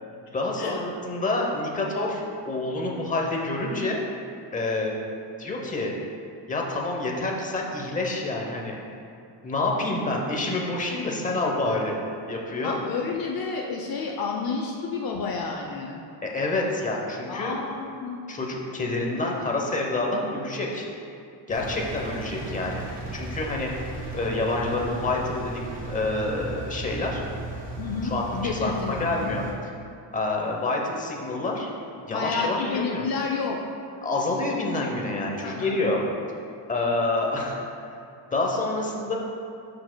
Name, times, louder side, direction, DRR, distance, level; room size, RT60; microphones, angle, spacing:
voice 1, 0.3-4.0 4.5-4.9 5.4-5.9 6.5-8.8 9.4-12.0 12.3-12.8 16.2-17.6 18.3-20.9 21.5-22.8 23.1-23.7 24.1-27.2 28.0-29.4 30.1-31.7 32.0-33.0 34.0-36.0 36.7-37.6 38.3-39.2, left 2 dB, 15° left, -1 dB, 0.7 m, -27 dB
voice 2, 12.6-16.0 17.3-18.2 27.8-29.4 32.1-33.6 35.4-35.8, left 4 dB, 55° left, 0 dB, 0.6 m, -30 dB
Engine, 21.5-29.5, right 3 dB, 20° right, 1.3 m, -36 dB
12.0 x 4.8 x 2.2 m, 2.6 s
cardioid pair, 155°, 45 cm